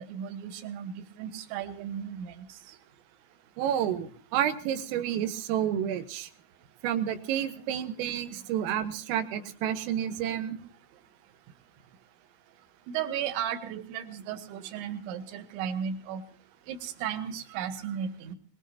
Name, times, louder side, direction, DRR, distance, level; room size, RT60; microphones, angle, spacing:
voice 1, 0.0-2.3 12.9-16.2 16.7-18.4, right 8 dB, 70° right, 7 dB, 3.4 m, -35 dB
voice 2, 3.6-6.3 6.8-10.6, right 10 dB, 85° right, 9 dB, 3.8 m, -30 dB
22.0 x 21.5 x 2.9 m, 0.42 s
omnidirectional pair, 5.9 m